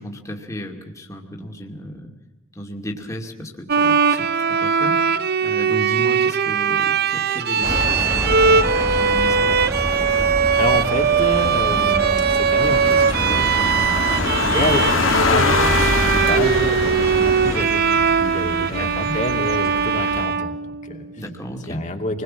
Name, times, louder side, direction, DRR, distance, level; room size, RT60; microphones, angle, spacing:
voice 1, 0.0-2.1 2.5-9.9 18.8-19.2 21.2-21.9, equal, 15° left, 1 dB, 2.4 m, -34 dB
Bowed string instrument, 3.7-21.1, right 6 dB, 50° right, 0.7 m, -20 dB
sound 1, 7.6-17.7, right 1 dB, 15° right, 1.3 m, -28 dB
voice 2, 10.6-14.1 14.4-21.0 21.7-22.2, left 2 dB, 35° left, 3 dB, 2.7 m, -28 dB
sound 2, 12.6-20.2, left 4 dB, 70° left, 1.7 m, -24 dB
27.5 x 21.0 x 7.5 m, 1.1 s
head